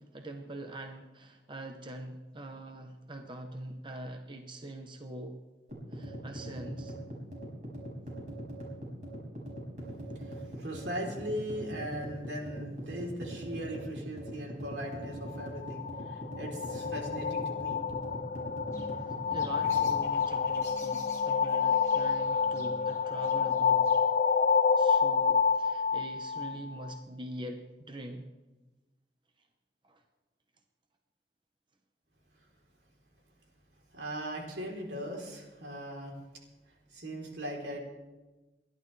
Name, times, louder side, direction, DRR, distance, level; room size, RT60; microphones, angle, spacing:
voice 1, 0.0-5.4 5.9-6.9 19.3-23.9 24.8-28.3 29.8-30.0, right 1 dB, 30° right, 5 dB, 0.9 m, -43 dB
sound 1, 5.7-20.0, right 1 dB, 45° right, 5.2 m, -42 dB
voice 2, 10.1-17.8 33.9-36.2 36.9-37.8, equal, 80° right, -1 dB, 3.6 m, -39 dB
sound 2, 15.3-27.0, left 6 dB, 45° left, 0.4 m, -28 dB
sound 3, 18.7-24.2, left 2 dB, 20° left, 2.3 m, -50 dB
29.0 x 11.5 x 3.3 m, 1.2 s
head